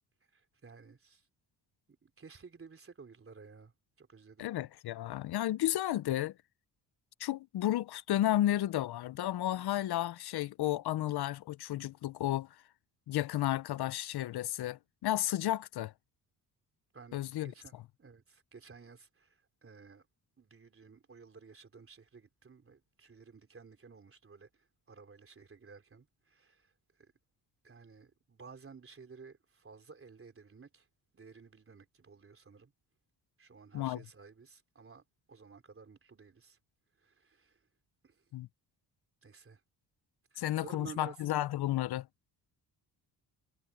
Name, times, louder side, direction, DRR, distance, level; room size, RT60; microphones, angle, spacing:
voice 1, 0.3-1.2 2.0-3.7 4.0-4.5 16.9-20.0 20.4-24.5 24.9-26.7 27.0-27.1 27.6-30.9 31.1-32.7 33.4-35.0 35.3-36.6 37.0-37.6 38.0-38.2 39.2-39.6 40.3-41.2, right 5 dB, 30° right, 3.5 m, -54 dB
voice 2, 4.4-6.3 7.2-12.5 13.1-15.9 17.1-17.5 33.7-34.0 38.3-38.5 40.4-42.1, left 13 dB, 70° left, 0.7 m, -32 dB
cardioid pair, 100°, 41 cm